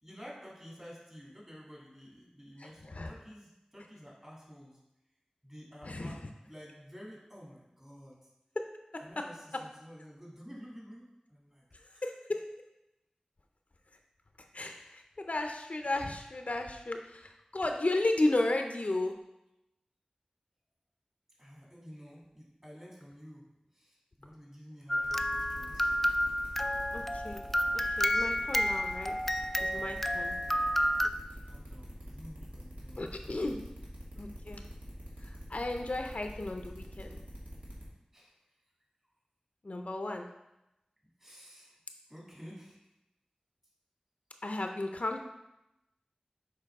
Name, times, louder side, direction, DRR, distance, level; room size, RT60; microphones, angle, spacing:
voice 1, 0.0-4.8 5.4-8.2 9.0-11.6 11.9-12.0 21.4-25.9 29.7-30.3 31.4-33.6 38.1-38.4 41.2-41.8 42.1-42.9, equal, 20° right, -5 dB, 2.4 m, -51 dB
voice 2, 2.6-3.1 5.8-6.2 8.9-9.2 12.0-12.5 14.5-19.2 26.9-27.4 28.0-29.2 29.6-30.3 33.0-33.6 34.2-34.6 35.2-37.2 39.6-40.3 44.4-45.2, left 2 dB, 70° left, 4 dB, 0.5 m, -34 dB
sound 1, 24.9-31.1, equal, 5° left, 0.3 m, -30 dB
sound 2, 25.0-37.9, equal, 75° right, 1.8 m, -46 dB
6.7 x 4.7 x 3.6 m, 0.90 s
wide cardioid pair, 50°, 2 cm